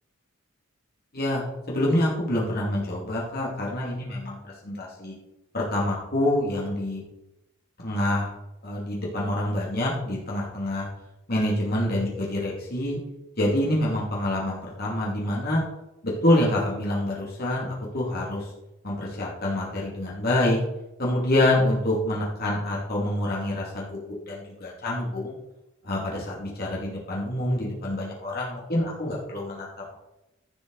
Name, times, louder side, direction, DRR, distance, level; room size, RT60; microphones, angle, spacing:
voice 1, 1.1-4.4 4.6-5.1 5.5-7.0 7.8-8.3 8.6-10.9 11.3-13.0 13.4-15.6 16.0-18.5 18.8-20.6 21.0-24.0 24.2-25.3 25.8-29.7, left 1 dB, 50° left, -4 dB, 2.8 m, -26 dB
14.5 x 7.6 x 4.2 m, 0.94 s
head